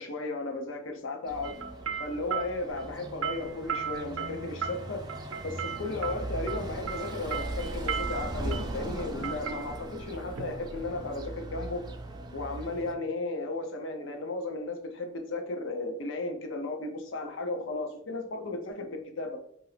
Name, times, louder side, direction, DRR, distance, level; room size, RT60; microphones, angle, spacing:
voice 1, 0.0-1.6 2.0-5.0 5.4-11.8 12.3-19.4, left 2 dB, 75° left, 5 dB, 0.6 m, -35 dB
sound 1, 1.3-12.9, right 1 dB, 20° right, 0.4 m, -39 dB
sound 2, 1.4-11.3, right 7 dB, 90° right, 0.5 m, -37 dB
2.8 x 2.5 x 3.2 m, 0.75 s
head